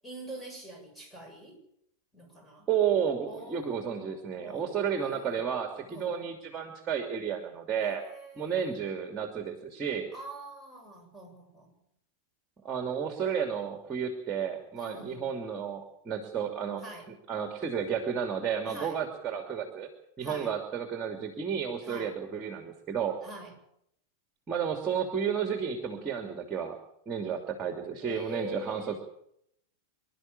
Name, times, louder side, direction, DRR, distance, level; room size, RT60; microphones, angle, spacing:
voice 1, 0.0-1.6 2.1-2.7 3.3-4.7 5.0-5.5 5.9-6.3 7.8-8.8 10.1-11.7 14.8-15.3 16.8-17.1 18.7-19.0 20.2-20.5 21.8-22.1 23.2-23.5 28.0-29.0, right 1 dB, 5° left, 1 dB, 8.0 m, -45 dB
voice 2, 2.7-8.0 8.4-10.1 12.6-16.8 17.3-19.9 20.2-23.2 24.5-26.8 27.1-29.0, right 7 dB, 25° right, 5 dB, 2.8 m, -32 dB
26.0 x 12.0 x 8.7 m, 0.75 s
figure-of-eight pair, 90°, 0 cm